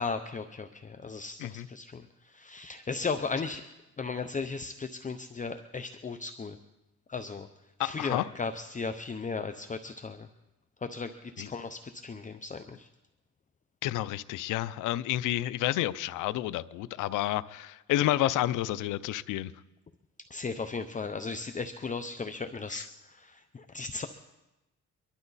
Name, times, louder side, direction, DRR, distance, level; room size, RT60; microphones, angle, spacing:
voice 1, 0.0-3.6 4.0-6.6 7.1-7.5 7.8-10.3 10.8-12.9 20.3-24.1, left 4 dB, 25° left, 8 dB, 0.8 m, -36 dB
voice 2, 7.8-8.3 11.4-11.5 13.8-19.5 22.7-22.9, left 14 dB, 90° left, 17 dB, 0.6 m, -30 dB
24.0 x 12.0 x 4.1 m, 0.99 s
cardioid pair, 90°, 30 cm